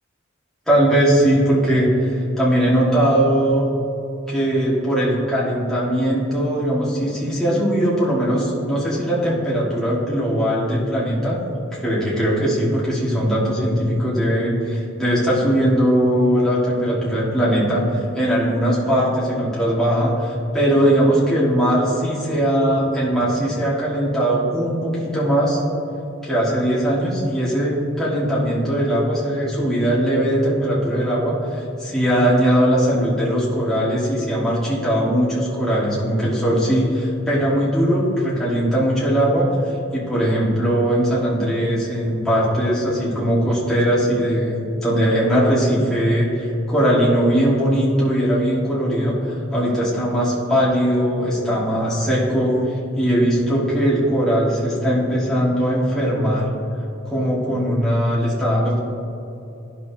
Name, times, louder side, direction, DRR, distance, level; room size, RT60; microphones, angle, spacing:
voice 1, 0.7-3.7 4.3-11.4 11.8-25.6 26.2-39.5 39.9-49.2 49.5-56.5 57.1-58.8, equal, ahead, -9 dB, 1.7 m, -20 dB
11.0 x 5.8 x 2.8 m, 2.9 s
head